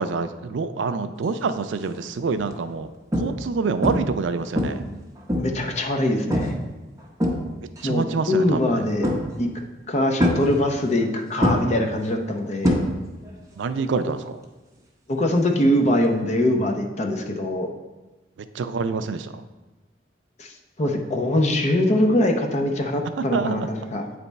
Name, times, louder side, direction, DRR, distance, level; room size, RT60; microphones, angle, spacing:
voice 1, 0.0-2.9 3.2-4.8 7.8-8.8 13.6-14.4 18.5-19.4 23.3-23.7, right 4 dB, 85° right, 11 dB, 0.4 m, -26 dB
sound 1, 1.5-1.8 2.4-2.5 3.1-3.5 3.8-4.2 4.6-5.7 6.3-6.7 7.0-7.8 9.0-9.5 10.2-11.1 11.4-13.3 13.6-14.0 16.0-16.1, equal, 20° right, 0.8 m, -24 dB
voice 2, 5.4-6.5 7.8-9.1 9.4-9.5 9.9-12.8 15.1-17.7 20.4-20.5 20.8-24.0, left 1 dB, 40° left, 3 dB, 0.7 m, -22 dB
8.5 x 3.4 x 4.1 m, 1.2 s
head